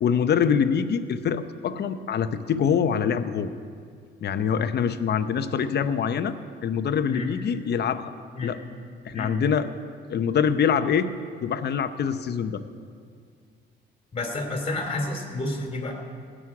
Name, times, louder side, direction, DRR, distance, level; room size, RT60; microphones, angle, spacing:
voice 1, 0.0-3.5 4.2-6.3 6.6-8.1 8.4-8.6 9.0-9.7 10.1-11.1 11.4-12.6, left 7 dB, 55° left, 11 dB, 0.8 m, -24 dB
voice 2, 14.1-15.9, left 2 dB, 30° left, 2 dB, 3.0 m, -30 dB
17.0 x 6.4 x 9.6 m, 2.2 s
cardioid pair, 90°, 20 cm